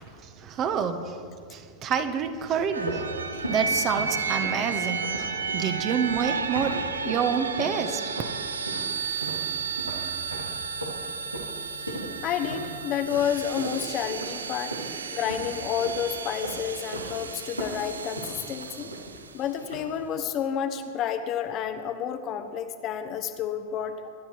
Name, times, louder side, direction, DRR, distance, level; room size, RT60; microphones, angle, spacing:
voice 1, 0.2-1.2 1.5-3.1 3.5-8.0, right 7 dB, 35° right, 7 dB, 1.3 m, -28 dB
sound 1, 2.4-7.3 7.6-8.4 8.7-14.9 15.2-16.0 16.4-17.2 17.4-19.3 19.6-20.0, right 1 dB, 90° right, 2.4 m, -37 dB
sound 2, 2.7-19.4, right 5 dB, 70° right, 0.8 m, -33 dB
voice 2, 12.2-14.8 15.1-18.9 19.3-24.1, left 8 dB, 35° left, 8 dB, 1.2 m, -30 dB
24.0 x 12.0 x 4.7 m, 2.2 s
figure-of-eight pair, 90°, 0 cm